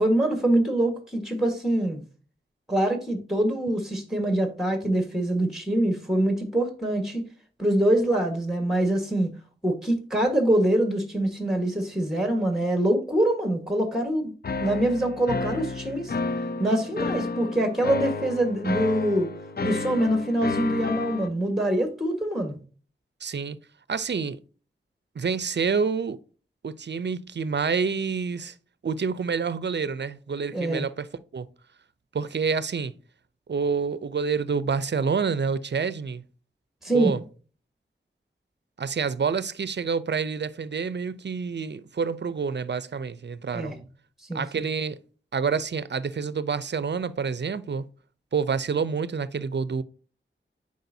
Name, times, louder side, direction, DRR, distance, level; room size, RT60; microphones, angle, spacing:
voice 1, 0.0-2.0 2.7-7.3 7.6-9.3 9.6-14.3 14.6-16.1 16.6-19.3 19.6-22.6 30.5-30.9 36.8-37.1 43.5-43.8 44.3-44.6, right 1 dB, ahead, 1.5 m, -24 dB
sound 1, 14.4-21.3, left 3 dB, 50° left, 0.5 m, -31 dB
voice 2, 23.2-23.6 23.9-24.4 25.2-26.2 26.6-28.5 28.8-31.5 32.1-33.0 33.5-36.2 36.9-37.2 38.8-43.8 44.3-45.0 45.3-47.8 48.3-49.8, right 5 dB, 55° right, 0.5 m, -28 dB
8.0 x 5.0 x 2.7 m
wide cardioid pair, 65°, 21 cm